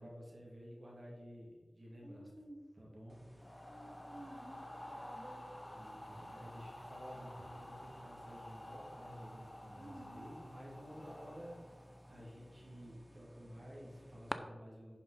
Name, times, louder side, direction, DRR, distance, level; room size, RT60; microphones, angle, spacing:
voice 1, 0.0-2.3 2.7-3.8 5.7-15.0, equal, 50° right, -4 dB, 2.7 m, -53 dB
voice 2, 2.0-2.6 3.6-5.5 9.8-10.3, right 1 dB, 25° right, -2 dB, 2.8 m, -53 dB
sound 1, 3.1-14.4, equal, 5° right, 0.6 m, -54 dB
sound 2, 3.4-12.5, left 1 dB, 25° left, 1.2 m, -52 dB
11.0 x 5.5 x 4.3 m, 1.4 s
wide cardioid pair, 60°, 0 cm